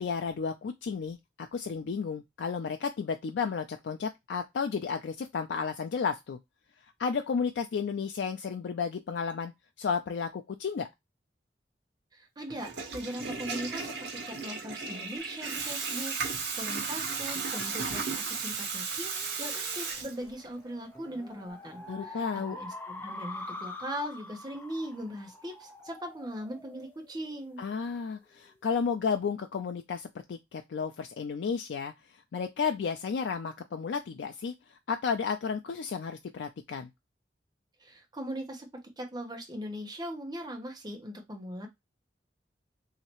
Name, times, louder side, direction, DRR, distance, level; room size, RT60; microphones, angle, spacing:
voice 1, 0.0-6.4 7.0-9.5 9.8-10.9 21.9-22.6 27.6-31.9 32.3-34.5 34.9-36.9, left 5 dB, 85° left, 0.4 m, -32 dB
voice 2, 12.1-22.2 22.5-27.6 37.8-38.7 39.0-41.7, equal, 25° right, 0.8 m, -40 dB
Water tap faucet / Toilet flush, 12.5-20.5, right 5 dB, 75° right, 1.1 m, -35 dB
sound 1, 18.8-27.6, left 2 dB, 10° left, 0.5 m, -45 dB
3.1 x 2.8 x 2.9 m
head